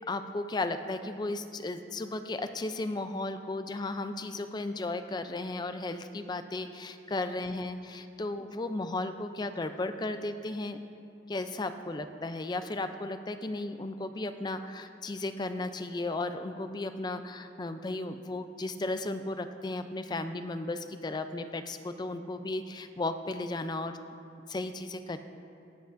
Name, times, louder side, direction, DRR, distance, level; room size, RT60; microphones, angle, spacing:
voice 1, 0.1-10.8 11.3-24.0 24.5-25.2, left 2 dB, 25° left, 9 dB, 0.4 m, -35 dB
19.5 x 7.9 x 2.6 m, 2.6 s
head